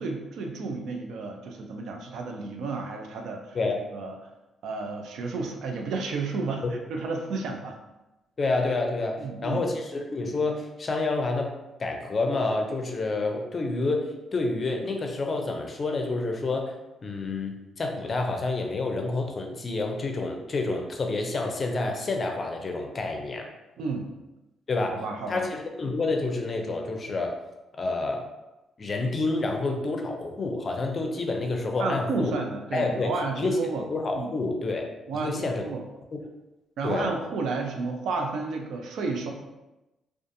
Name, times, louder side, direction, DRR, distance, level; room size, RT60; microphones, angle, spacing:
voice 1, 0.0-3.6 3.9-4.2 4.6-6.6 6.9-7.8 9.2-9.6 23.8-24.1 24.9-25.5 31.8-33.8 34.2-34.3 35.1-35.8 36.8-39.3, right 3 dB, 75° right, 3 dB, 0.4 m, -31 dB
voice 2, 8.4-11.5 11.8-23.5 24.7-25.0 25.3-27.4 27.8-28.3 28.8-32.3 32.7-33.1 33.4-35.6 36.1-36.2 36.8-37.1, left 3 dB, 40° left, 3 dB, 0.4 m, -28 dB
2.5 x 2.4 x 2.5 m, 0.99 s
cardioid pair, 90°, 0 cm